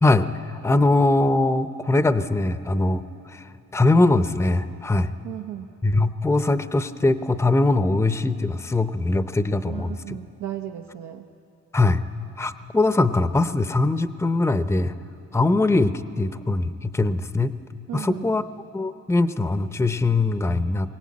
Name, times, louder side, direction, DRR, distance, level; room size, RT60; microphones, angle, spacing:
voice 1, 0.0-5.1 5.8-10.2 11.7-12.0 12.4-14.9 15.3-17.5 17.9-18.4 18.7-20.9, left 2 dB, 10° left, 11 dB, 0.6 m, -22 dB
voice 2, 5.2-5.7 9.6-11.3 17.9-18.3, right 11 dB, 85° right, 3 dB, 0.9 m, -35 dB
22.5 x 17.5 x 8.5 m, 2.7 s
cardioid pair, 90°, 30 cm